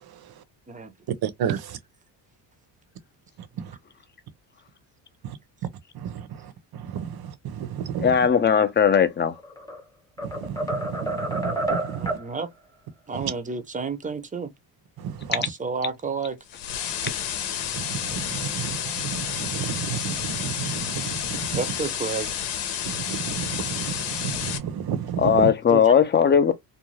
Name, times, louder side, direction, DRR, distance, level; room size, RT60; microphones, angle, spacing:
voice 1, 1.2-1.8 3.6-3.7 5.2-5.4 5.9-8.2 10.2-12.2 13.1-13.2 15.0-15.3 17.7-21.6 22.8-25.5, right 8 dB, 55° right, 0.7 m, -32 dB
voice 2, 8.0-9.3 25.2-26.5, left 7 dB, 25° left, 0.5 m, -18 dB
sound 1, 9.3-9.8 10.2-12.3, right 1 dB, 10° left, 0.9 m, -29 dB
voice 3, 12.0-12.5 13.1-14.5 15.3-16.4 21.5-22.4 25.7-25.9, right 5 dB, 15° right, 0.6 m, -31 dB
sound 2, 16.5-24.6, left 9 dB, 65° left, 0.9 m, -30 dB
2.6 x 2.3 x 3.1 m
cardioid pair, 95°, 45 cm